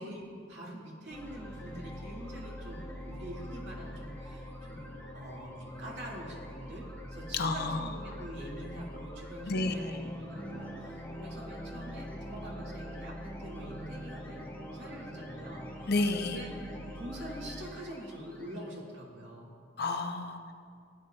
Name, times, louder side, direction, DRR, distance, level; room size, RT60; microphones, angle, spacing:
voice 1, 0.0-15.9 16.2-19.5, equal, 65° right, -4 dB, 2.1 m, -45 dB
sound 1, 1.1-18.7, equal, 10° left, 1.5 m, -43 dB
voice 2, 7.3-7.9 9.5-9.9 15.9-16.4 19.8-20.5, left 3 dB, 55° left, 6 dB, 0.6 m, -31 dB
16.5 x 9.4 x 2.3 m, 2.3 s
head